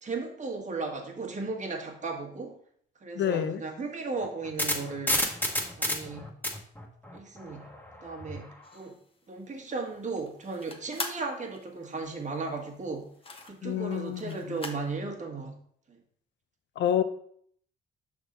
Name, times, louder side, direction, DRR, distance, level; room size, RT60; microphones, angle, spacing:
voice 1, 0.0-2.5 3.0-5.2 5.8-6.3 7.1-7.7 8.0-8.9 9.3-13.1 13.4-15.6 15.9-16.0, right 3 dB, 35° right, 2 dB, 1.5 m, -36 dB
voice 2, 3.1-3.6 13.6-14.6 16.8-17.0, left 10 dB, 65° left, 11 dB, 0.7 m, -28 dB
sound 1, 4.2-8.4, left 1 dB, 10° left, 1.3 m, -31 dB
sound 2, 8.6-14.9, left 3 dB, 30° left, 0.9 m, -43 dB
6.0 x 3.6 x 5.2 m, 0.62 s
cardioid pair, 90°, 20 cm